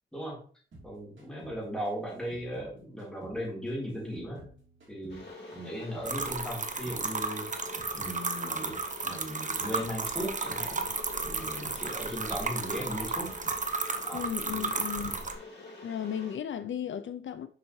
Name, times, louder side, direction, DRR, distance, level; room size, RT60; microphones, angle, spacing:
sound 1, 0.7-3.4 3.7-6.4 6.6-10.0 10.3-10.7 10.9-13.6 13.9-14.3 14.6-15.2, right 2 dB, 75° right, 2.6 m, -54 dB
voice 1, 0.8-4.5 4.9-5.2 5.5-7.5 7.9-8.7 9.0-10.9 11.2-13.3 14.0-15.2, equal, 5° left, 3.7 m, -37 dB
Water / Boiling, 5.1-16.4, left 3 dB, 60° left, 2.3 m, -46 dB
sound 2, 6.0-15.3, right 4 dB, 40° right, 0.8 m, -34 dB
voice 2, 14.1-15.1 15.8-17.5, left 9 dB, 75° left, 0.4 m, -35 dB
6.9 x 5.6 x 3.1 m
wide cardioid pair, 105°, 20 cm